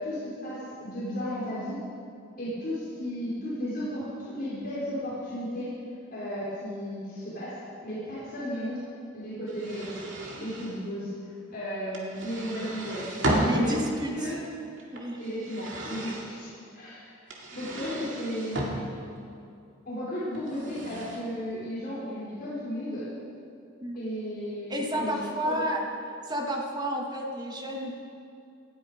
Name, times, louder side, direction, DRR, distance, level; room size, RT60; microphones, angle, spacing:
voice 1, 0.0-1.8 2.4-5.7 6.1-7.6 7.8-8.8 9.1-10.0 10.3-11.1 11.5-13.1 13.5-13.8 14.1-14.4 15.2-17.2 17.5-18.9 19.8-23.1 23.9-25.6, equal, 50° left, -10 dB, 4.6 m, -34 dB
sound 1, 9.5-10.8 11.9-13.7 14.8-16.3 17.3-18.7 20.3-21.2, right 1 dB, 65° right, 2.5 m, -33 dB
voice 2, 13.4-14.3 14.9-15.2 23.8-24.0 24.7-25.8 26.2-28.0, equal, 20° right, 0 dB, 1.6 m, -30 dB
19.0 x 13.0 x 5.1 m, 2.4 s
head